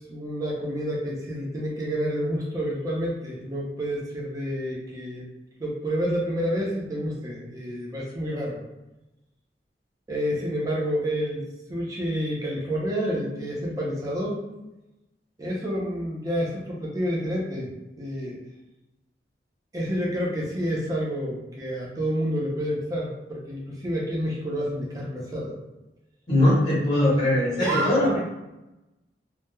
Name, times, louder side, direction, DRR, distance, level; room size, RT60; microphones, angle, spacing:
voice 1, 0.1-5.2 5.6-8.6 10.1-14.4 15.4-18.4 19.7-25.6 27.6-28.1, equal, 20° right, -4 dB, 0.5 m, -29 dB
voice 2, 26.3-28.2, left 1 dB, 25° left, -7 dB, 0.7 m, -21 dB
2.2 x 2.0 x 2.9 m, 0.99 s
head